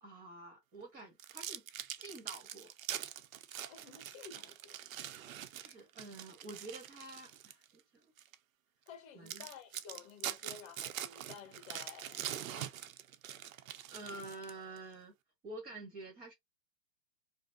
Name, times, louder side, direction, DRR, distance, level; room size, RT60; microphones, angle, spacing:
voice 1, 0.0-1.6 2.0-2.7 5.3-8.1 9.1-9.5 13.9-15.1 15.4-16.3, right 2 dB, 20° right, 1.0 m, -49 dB
sound 1, 1.2-7.6 8.2-8.3 8.9-9.0 9.3-14.8, right 11 dB, 55° right, 0.6 m, -44 dB
voice 2, 3.7-4.8 8.9-12.8, left 7 dB, 30° left, 1.5 m, -52 dB
5.1 x 2.0 x 2.6 m
hypercardioid pair, 125°, 48 cm